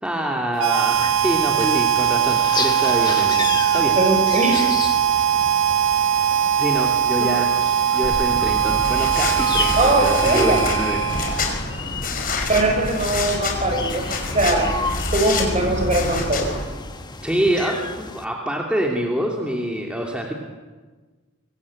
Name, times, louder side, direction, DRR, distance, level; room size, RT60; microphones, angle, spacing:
voice 1, 0.0-4.0 6.6-7.5 7.9-11.0 12.7-12.8 17.2-20.3, equal, 5° right, -1 dB, 2.7 m, -26 dB
Harmonica, 0.6-11.6, right 10 dB, 75° right, 0.8 m, -20 dB
sound 1, 0.9-18.2, left 4 dB, 20° left, 1.4 m, -33 dB
voice 2, 4.0-4.7 9.8-10.6 12.5-14.7 15.1-16.5, right 2 dB, 35° right, 3 dB, 6.3 m, -21 dB
sound 2, 8.0-16.6, left 3 dB, 45° left, 5.6 m, -27 dB
25.0 x 24.5 x 8.6 m, 1.3 s
head